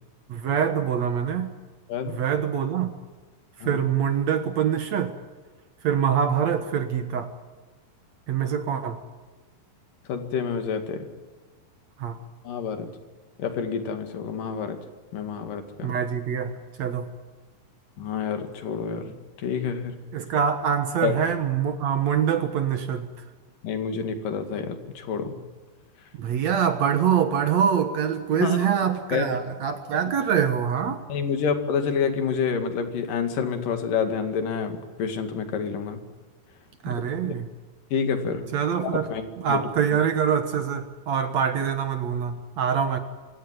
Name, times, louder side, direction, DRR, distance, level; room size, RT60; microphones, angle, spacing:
voice 1, 0.3-1.5 2.1-2.9 3.6-5.2 5.8-7.3 8.3-9.0 12.0-12.2 15.8-17.1 20.1-23.1 26.2-31.0 36.8-37.5 38.5-39.1 39.4-43.0, right 8 dB, 65° right, 8 dB, 1.8 m, -24 dB
voice 2, 1.9-2.2 3.6-3.8 10.1-11.1 12.4-12.9 13.4-14.8 15.1-16.0 18.0-20.0 21.0-21.2 23.6-25.4 28.4-28.7 29.1-29.5 31.1-36.0 36.9-37.4 37.9-38.5 38.8-39.7, left 6 dB, 60° left, 7 dB, 3.5 m, -28 dB
26.0 x 17.0 x 9.6 m, 1.4 s
omnidirectional pair, 4.8 m